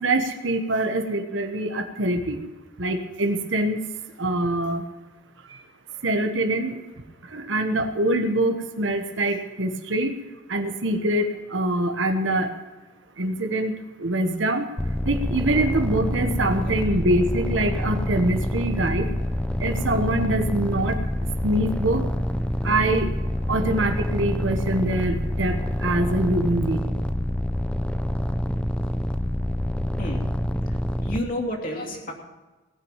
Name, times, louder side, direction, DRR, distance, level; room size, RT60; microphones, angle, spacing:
voice 1, 0.0-2.4 2.8-3.8 4.2-4.9 5.5-5.7 6.0-6.8 7.2-10.1 10.5-12.5 13.2-13.7 14.0-14.7 15.0-19.1 19.6-21.0 21.4-22.0 22.6-23.1 23.5-26.8, right 1 dB, 70° right, 5 dB, 1.2 m, -24 dB
sound 1, 14.8-31.2, equal, 5° left, 0.5 m, -27 dB
voice 2, 16.6-17.0 30.0-30.2 30.7-32.1, left 1 dB, 45° left, 0 dB, 2.7 m, -31 dB
18.5 x 6.3 x 9.0 m, 1.2 s
head